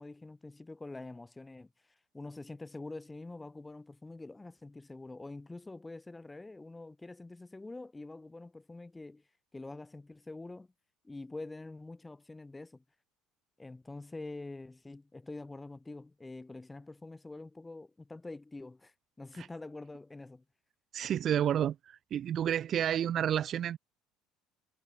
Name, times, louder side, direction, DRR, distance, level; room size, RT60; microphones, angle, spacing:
voice 1, 0.0-1.7 2.1-9.2 9.5-10.7 11.0-12.8 13.6-20.4, left 2 dB, 10° left, 7.7 m, -46 dB
voice 2, 20.9-23.8, right 10 dB, 45° right, 1.7 m, -30 dB
cardioid pair, 125°, 0 cm